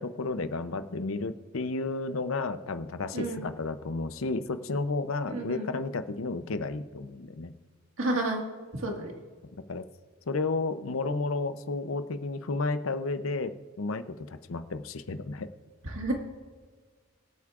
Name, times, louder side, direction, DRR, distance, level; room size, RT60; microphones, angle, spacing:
voice 1, 0.0-7.5 9.7-9.9 10.3-15.5, left 3 dB, 80° left, 11 dB, 0.7 m, -32 dB
voice 2, 3.1-3.5 5.3-5.7 8.0-8.4 8.7-9.1 15.8-16.1, right 2 dB, 75° right, 2 dB, 1.8 m, -30 dB
23.0 x 8.3 x 2.5 m, 1.5 s
head